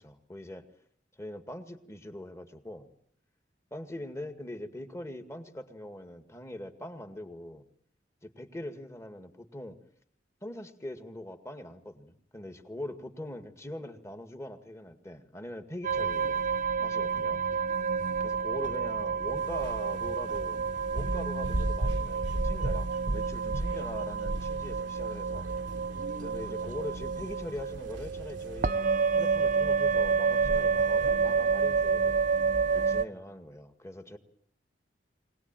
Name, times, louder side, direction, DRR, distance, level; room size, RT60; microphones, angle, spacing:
voice 1, 0.0-0.7 1.2-2.9 3.7-7.6 8.2-9.8 10.4-16.4 16.8-17.5 18.2-20.6 20.9-25.5 26.2-28.7 29.2-32.2 32.7-34.2, left 1 dB, 15° left, 8 dB, 2.0 m, -42 dB
sound 1, 15.8-33.0, right 5 dB, 45° right, 0.9 m, -29 dB
sound 2, 19.4-33.0, right 1 dB, 80° right, 1.2 m, -38 dB
24.0 x 19.0 x 9.0 m, 0.64 s
head